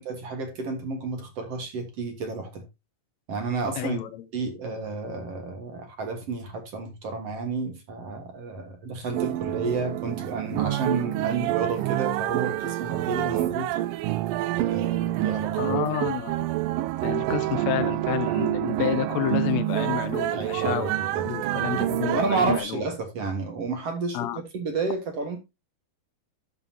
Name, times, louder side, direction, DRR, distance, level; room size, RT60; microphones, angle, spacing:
voice 1, 0.0-2.7 3.3-4.0 4.3-13.7 14.5-15.8 20.3-21.2 22.1-25.4, right 3 dB, 50° right, 2.2 m, -31 dB
voice 2, 3.8-4.1 15.6-16.5 17.0-20.9 21.2-22.8 24.1-24.4, left 12 dB, 75° left, 1.6 m, -29 dB
sound 1, 9.1-22.6, right 15 dB, 80° right, 2.3 m, -27 dB
11.0 x 6.9 x 2.8 m
omnidirectional pair, 4.1 m